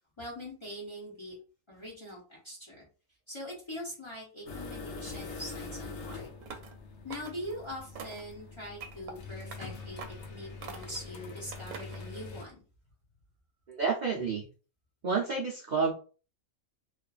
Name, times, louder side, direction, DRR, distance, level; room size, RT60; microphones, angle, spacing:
voice 1, 0.2-1.3 1.7-2.9 3.3-6.3 7.0-10.0 10.3-12.6, equal, 25° left, -4 dB, 0.7 m, -42 dB
sound 1, 4.5-12.4, left 4 dB, 65° left, 0.8 m, -44 dB
sound 2, 6.4-6.8 7.1-7.6 8.0-8.3 8.8-9.1 9.5-9.6 10.0-10.3 10.6-11.1 11.5-12.0, right 5 dB, 90° right, 1.1 m, -44 dB
voice 2, 13.7-14.5 15.0-15.9, right 5 dB, 60° right, -3 dB, 0.4 m, -29 dB
2.5 x 2.4 x 2.3 m, 0.36 s
omnidirectional pair, 1.5 m